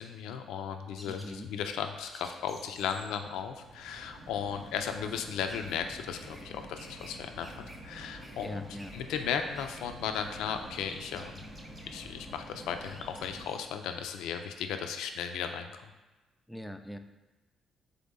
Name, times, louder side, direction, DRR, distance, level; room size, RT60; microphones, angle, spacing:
voice 1, 0.0-8.6 8.9-11.4 11.9-15.9, left 7 dB, 90° left, 6 dB, 0.3 m, -36 dB
sound 1, 0.9-7.2 7.4-14.7, right 1 dB, 10° right, 0.7 m, -53 dB
voice 2, 1.0-1.5 8.0-9.0 16.5-17.0, equal, 5° left, 7 dB, 0.3 m, -43 dB
sound 2, 2.4-13.5, equal, 50° right, 0.8 m, -49 dB
4.0 x 3.4 x 3.6 m, 1.2 s
cardioid pair, 90°, 0 cm